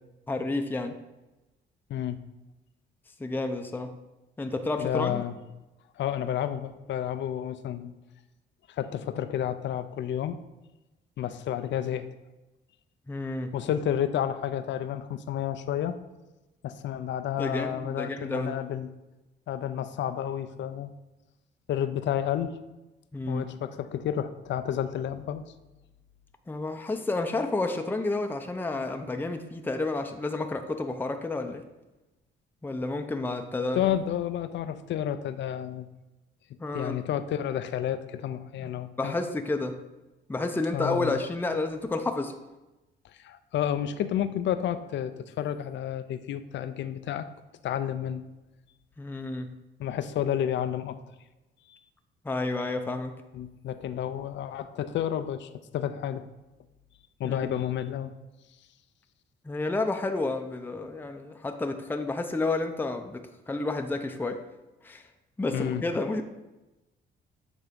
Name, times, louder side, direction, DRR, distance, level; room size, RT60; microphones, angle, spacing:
voice 1, 0.3-0.9 3.2-4.0 4.4-5.2 13.1-13.6 17.4-18.5 23.1-23.5 26.5-31.6 32.6-33.8 36.6-37.0 38.6-38.7 39.0-39.8 40.3-42.4 49.0-49.6 52.2-53.2 57.2-57.4 59.4-64.4 64.8-65.0 65.4-66.2, left 2 dB, 10° left, 5 dB, 0.6 m, -30 dB
voice 2, 1.9-2.2 4.8-5.4 6.0-7.9 8.7-10.4 11.2-12.1 13.5-16.0 16.6-18.9 19.5-20.9 21.7-22.6 23.3-25.5 33.7-35.9 36.7-39.2 40.7-41.2 43.0-47.3 47.6-48.2 49.8-51.0 51.7-51.8 53.3-56.3 57.2-58.1 65.5-65.8, left 10 dB, 70° left, 11 dB, 0.5 m, -31 dB
8.1 x 3.6 x 5.2 m, 1.0 s
cardioid pair, 90°, 20 cm